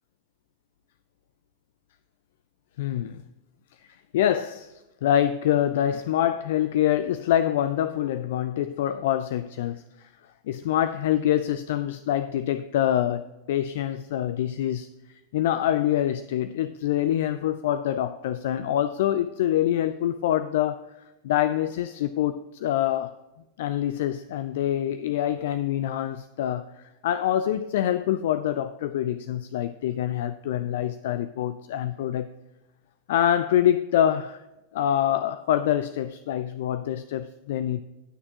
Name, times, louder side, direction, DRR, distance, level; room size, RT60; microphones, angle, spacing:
voice 1, 2.8-3.2 4.1-4.7 5.0-9.8 10.5-14.9 15.3-20.8 21.2-23.2 23.6-26.7 27.0-32.3 33.1-34.4 34.7-37.8, left 11 dB, 55° left, 0.4 m, -25 dB
18.0 x 6.4 x 2.8 m
figure-of-eight pair, 90°, 0 cm